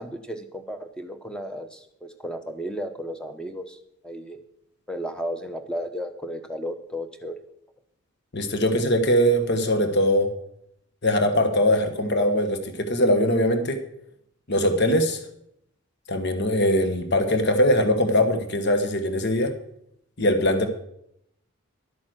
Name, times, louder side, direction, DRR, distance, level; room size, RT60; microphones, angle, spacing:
voice 1, 0.0-3.8 4.0-4.4 4.9-7.4, equal, 5° left, 7 dB, 0.9 m, -34 dB
voice 2, 8.3-10.3 11.0-13.8 14.5-15.2 16.1-19.5 20.2-20.7, left 1 dB, 50° left, 8 dB, 1.3 m, -21 dB
12.0 x 8.5 x 6.3 m, 0.73 s
head